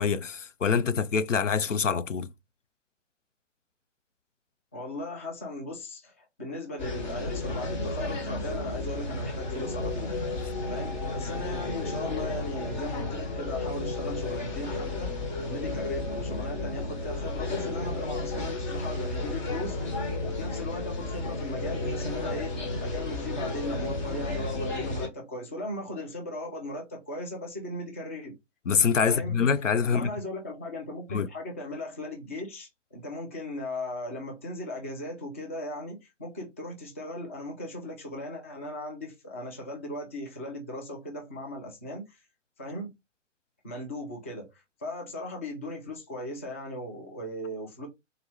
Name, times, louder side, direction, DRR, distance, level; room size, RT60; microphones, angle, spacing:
voice 1, 0.0-2.3 28.7-30.1 31.1-31.3, left 6 dB, 85° left, 0.5 m, -25 dB
voice 2, 4.7-10.2 10.7-15.1 15.4-28.4 29.0-29.4 29.8-42.2 42.6-42.9 43.6-47.9, left 1 dB, 10° left, 0.4 m, -38 dB
sound 1, 6.8-25.1, left 2 dB, 40° left, 1.4 m, -32 dB
3.7 x 2.8 x 3.2 m
figure-of-eight pair, 125°, 37 cm